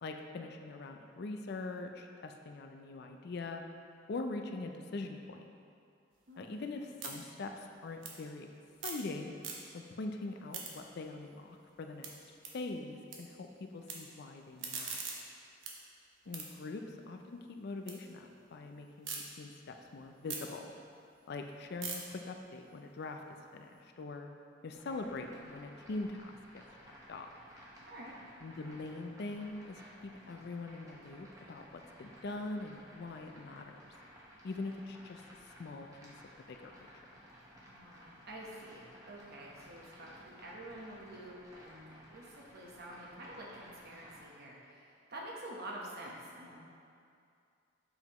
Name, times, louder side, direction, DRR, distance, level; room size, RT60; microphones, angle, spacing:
voice 1, 0.0-3.6 4.1-5.5 6.4-8.5 8.8-9.3 9.7-12.1 12.5-15.0 16.3-20.7 21.3-23.2 23.5-24.3 24.6-26.4 27.1-27.3 28.4-29.8 30.3-33.9 34.4-35.2 35.6-36.1 36.5-36.9, left 3 dB, 55° left, 4 dB, 0.4 m, -42 dB
sound 1, 6.1-9.1 9.3-10.0 10.3-13.2 13.5-13.9 14.4-18.0 18.3-19.2 19.6-23.8, right 5 dB, 75° right, 0.9 m, -46 dB
voice 2, 6.3-6.6 27.9-28.1 37.6-46.6, right 1 dB, 55° right, -3 dB, 1.1 m, -48 dB
sound 2, 24.7-44.2, equal, 20° right, 1.1 m, -57 dB
7.0 x 5.6 x 3.0 m, 2.4 s
head